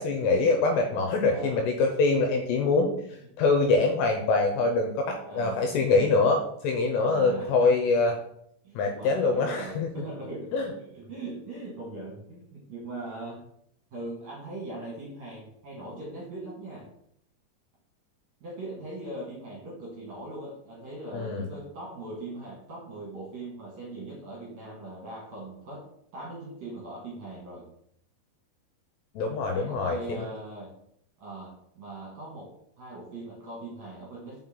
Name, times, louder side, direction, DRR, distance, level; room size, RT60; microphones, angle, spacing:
voice 1, 0.0-2.9 3.4-8.2 8.8-9.9 10.5-10.7 21.1-21.5 29.2-30.0, left 3 dB, 80° left, 3 dB, 2.6 m, -24 dB
voice 2, 1.3-1.9 5.3-5.7 7.1-7.7 8.6-13.4 13.9-16.9 18.4-25.9 26.1-27.7 29.5-30.7 31.2-34.4, right 2 dB, 55° right, -5 dB, 2.2 m, -40 dB
6.0 x 5.3 x 3.7 m, 0.71 s
omnidirectional pair, 5.4 m